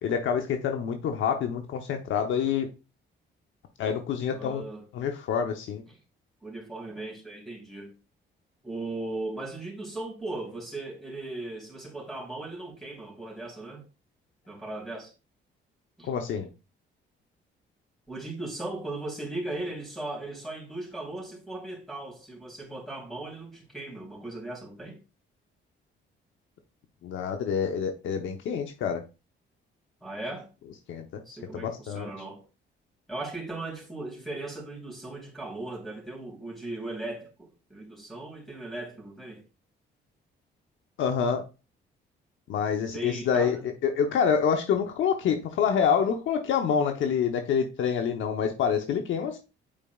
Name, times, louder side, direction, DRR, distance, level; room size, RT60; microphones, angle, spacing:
voice 1, 0.0-2.7 3.8-4.6 4.9-5.8 16.0-16.5 27.0-29.0 30.9-31.2 31.5-32.1 41.0-41.4 42.5-49.4, left 7 dB, 75° left, 0.9 m, -27 dB
voice 2, 4.3-4.9 5.9-6.0 6.4-7.9 8.6-13.8 14.5-15.1 16.0-16.1 18.1-25.0 30.0-30.5 31.3-32.4 33.1-39.4 42.9-43.6, right 2 dB, ahead, 3.6 m, -38 dB
8.8 x 4.9 x 2.4 m
cardioid pair, 90°, 20 cm